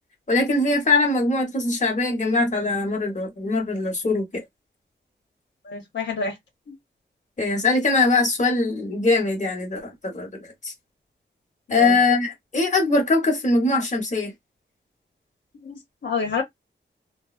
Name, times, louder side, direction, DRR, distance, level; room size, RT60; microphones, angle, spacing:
voice 1, 0.3-4.3 7.4-10.7 11.7-14.3, left 3 dB, 40° left, 1.1 m, -22 dB
voice 2, 5.7-6.3 11.7-12.0 15.6-16.4, left 4 dB, 75° left, 1.0 m, -28 dB
3.3 x 2.1 x 2.4 m
wide cardioid pair, 90°, 20 cm